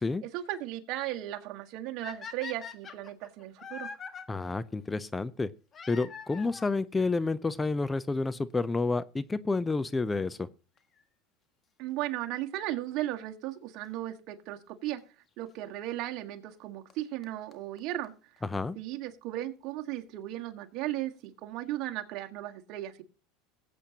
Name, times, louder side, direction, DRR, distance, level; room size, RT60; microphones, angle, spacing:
voice 1, 0.2-3.9 11.8-15.0 15.4-18.1 18.7-23.0, right 14 dB, 60° right, 1.7 m, -36 dB
sound 1, 2.0-4.2 5.7-6.8 7.7-7.8 8.5-8.6 8.8-8.9 10.8-11.0 13.8-13.9 15.0-15.1 16.5-16.6 16.9-17.0 17.2-17.3 17.5-17.6 17.8-17.9 18.0-18.1 18.4-18.5, left 6 dB, 30° left, 1.5 m, -43 dB
voice 2, 4.3-5.5 5.9-10.5 18.4-18.8, left 3 dB, 15° left, 0.5 m, -30 dB
19.5 x 8.4 x 2.9 m
supercardioid pair, 105°, 0 cm